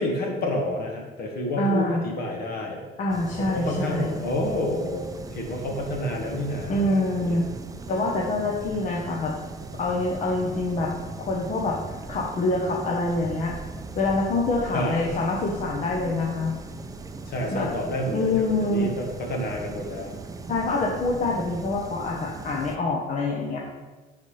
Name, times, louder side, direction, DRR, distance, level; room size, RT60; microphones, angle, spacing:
voice 1, 0.0-2.8 3.4-5.0 5.3-7.4 14.7-15.1 17.3-20.1, left 1 dB, 65° left, 1 dB, 1.7 m, -29 dB
voice 2, 1.6-2.0 3.0-4.2 6.7-7.4 7.9-9.3 9.7-10.9 11.2-11.8 12.1-13.5 14.0-16.5 17.5-17.7 18.1-18.9 20.5-23.6, left 2 dB, 45° left, -1 dB, 0.9 m, -25 dB
sound 1, 3.1-22.8, right 3 dB, 20° right, 0.5 m, -39 dB
11.0 x 4.2 x 3.3 m, 1.3 s
cardioid pair, 110°, 17 cm